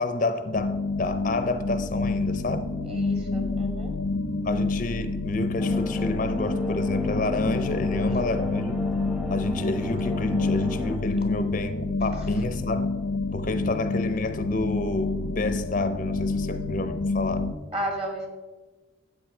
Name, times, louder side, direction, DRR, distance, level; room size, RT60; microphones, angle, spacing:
voice 1, 0.0-2.7 4.4-8.8 9.3-12.9 13.3-17.5, left 2 dB, 40° left, 0.6 m, -29 dB
sound 1, 0.5-17.5, left 3 dB, 90° left, 0.6 m, -28 dB
voice 2, 2.8-4.0 12.1-12.4 17.7-18.3, right 1 dB, 30° right, 2.1 m, -33 dB
sound 2, 5.6-11.0, left 2 dB, ahead, 0.8 m, -34 dB
13.0 x 8.5 x 4.4 m
head